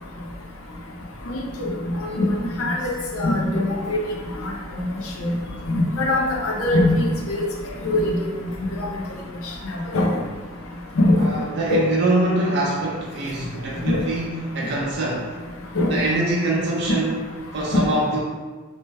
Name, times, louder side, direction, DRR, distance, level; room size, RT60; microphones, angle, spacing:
voice 1, 3.1-4.0 4.4-4.9 5.2-5.4 5.7-7.5 7.8-8.2 9.9-10.1 11.0-11.3 11.7-11.8 13.9-14.0 15.8-16.0 16.9-17.0 17.7-17.8, left 1 dB, 85° left, -1 dB, 0.6 m, -21 dB
voice 2, 11.2-15.3 15.9-17.2 17.5-18.2, right 2 dB, 50° right, -4 dB, 0.4 m, -24 dB
2.8 x 2.1 x 3.3 m, 1.4 s
head